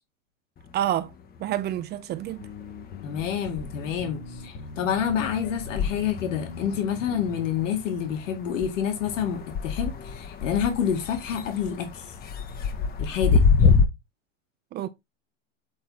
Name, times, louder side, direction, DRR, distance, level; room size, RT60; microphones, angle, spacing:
sound 1, 0.6-1.8 2.1-13.8, left 5 dB, 25° left, 1.0 m, -28 dB
voice 1, 0.7-1.1 1.4-2.5 13.6-13.7 14.7-14.9, right 12 dB, 25° right, 0.5 m, -28 dB
sound 2, 2.4-7.5, left 4 dB, 50° left, 2.1 m, -41 dB
voice 2, 3.0-12.1 13.0-13.4, left 8 dB, 80° left, 2.2 m, -28 dB
7.8 x 3.9 x 4.2 m
supercardioid pair, 125°, 37 cm